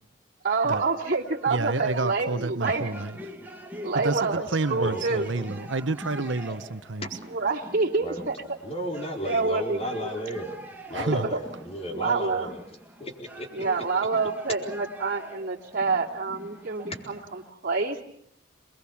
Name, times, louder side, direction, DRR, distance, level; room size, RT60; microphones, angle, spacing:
voice 1, 0.4-2.9 3.8-5.3 7.3-8.6 9.2-10.1 11.0-11.4 11.9-12.5 13.5-18.0, right 4 dB, 50° right, 3.1 m, -27 dB
sound 1, 0.6-17.5, equal, 10° right, 2.0 m, -45 dB
voice 2, 1.5-3.2 3.9-7.1 10.9-11.3, right 3 dB, 85° right, 1.0 m, -29 dB
voice 3, 4.7-5.5 8.0-8.3 8.6-10.6 10.9-12.6 13.0-13.6, equal, 35° left, 4.3 m, -34 dB
27.5 x 21.0 x 7.2 m
head